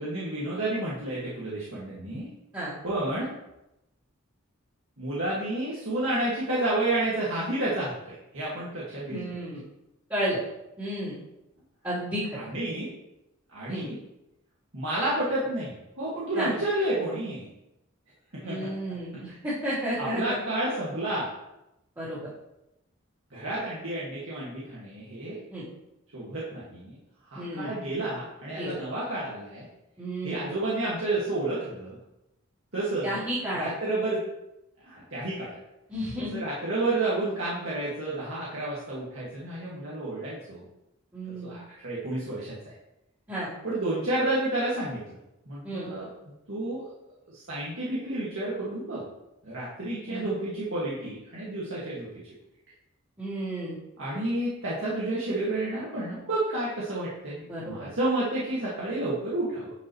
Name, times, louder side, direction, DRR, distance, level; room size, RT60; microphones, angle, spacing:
voice 1, 0.0-2.3 2.8-3.3 5.0-9.3 12.3-12.9 13.5-14.0 14.7-17.5 18.3-18.7 19.3-19.4 20.0-21.3 23.3-25.4 26.1-27.0 27.3-29.7 30.2-32.0 32.7-33.2 33.6-34.3 34.8-35.6 36.2-40.6 41.4-42.7 43.6-45.0 45.5-46.1 46.5-46.8 47.3-49.0 49.4-52.1 54.0-57.4 57.6-59.7, right 2 dB, 70° right, -8 dB, 2.0 m, -30 dB
voice 2, 9.1-9.6 10.1-10.4 10.8-11.1 11.8-12.2 13.7-13.9 16.3-16.5 18.4-20.4 22.0-22.2 25.5-25.6 27.3-27.7 28.6-28.8 30.0-30.4 33.0-33.7 35.9-36.4 41.1-41.5 43.3-43.5 45.6-45.9 50.1-50.2 53.2-53.8 57.5-57.7, right 1 dB, 15° right, -13 dB, 3.2 m, -32 dB
10.5 x 5.4 x 3.1 m, 0.90 s
head